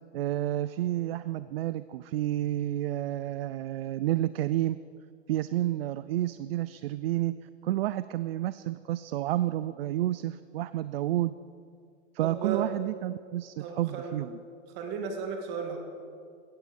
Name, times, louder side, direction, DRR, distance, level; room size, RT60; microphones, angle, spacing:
voice 1, 0.1-4.8 5.3-7.4 7.6-11.3 12.1-14.4, right 14 dB, 55° right, 15 dB, 0.5 m, -30 dB
voice 2, 12.2-12.7 13.6-14.2 14.7-15.8, right 6 dB, 30° right, 2 dB, 2.3 m, -34 dB
17.0 x 14.0 x 5.3 m, 2.2 s
supercardioid pair, 165°, 36 cm